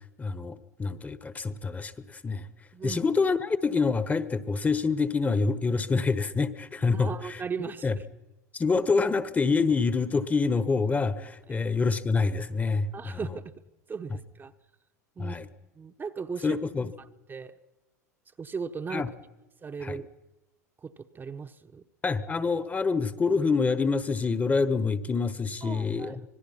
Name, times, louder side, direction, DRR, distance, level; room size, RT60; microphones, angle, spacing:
voice 1, 0.2-2.5 2.8-7.4 7.8-7.9 8.5-13.2 15.2-15.5 16.4-16.9 18.9-19.1 19.8-20.0 22.0-26.3, left 4 dB, 15° left, 14 dB, 1.3 m, -26 dB
voice 2, 6.9-8.0 11.5-11.6 12.9-13.5 13.9-14.5 15.2-15.4 15.8-16.6 17.3-17.5 18.4-19.0 19.6-20.1 20.8-21.8 25.6-26.3, right 5 dB, 20° right, 7 dB, 1.1 m, -37 dB
25.5 x 20.5 x 5.8 m, 1.0 s
hypercardioid pair, 90°, 9 cm